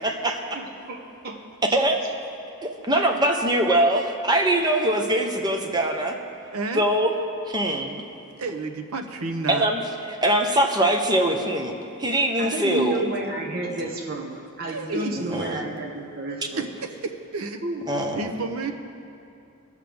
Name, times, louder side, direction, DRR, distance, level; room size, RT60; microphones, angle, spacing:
voice 1, 0.0-0.4 1.7-2.0 2.6-6.2 6.7-7.1 7.5-8.0 9.5-9.8 10.1-11.7 12.0-13.0 15.1-15.6 17.9-18.3, right 1 dB, 20° right, 3 dB, 0.8 m, -22 dB
voice 2, 0.5-1.4 1.7-1.8 12.4-16.7 17.6-17.9, right 2 dB, 45° right, -1 dB, 1.0 m, -31 dB
voice 3, 6.5-6.8 8.4-9.7 14.7-15.5 16.5-17.6 18.0-18.7, right 3 dB, 75° right, 6 dB, 0.7 m, -31 dB
18.5 x 6.5 x 3.4 m, 2.6 s
head